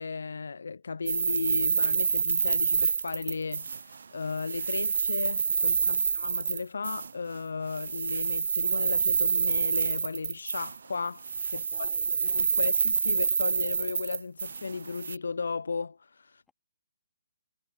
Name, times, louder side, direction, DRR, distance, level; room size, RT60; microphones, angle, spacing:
voice 1, 0.0-16.4, left 4 dB, 75° left, 0.4 m, -35 dB
sound 1, 1.1-4.0 4.3-7.1 7.7-10.9 11.2-15.2, right 5 dB, 70° right, 0.3 m, -27 dB
voice 2, 11.5-12.2, left 5 dB, 10° left, 2.2 m, -59 dB
hypercardioid pair, 145°, 0 cm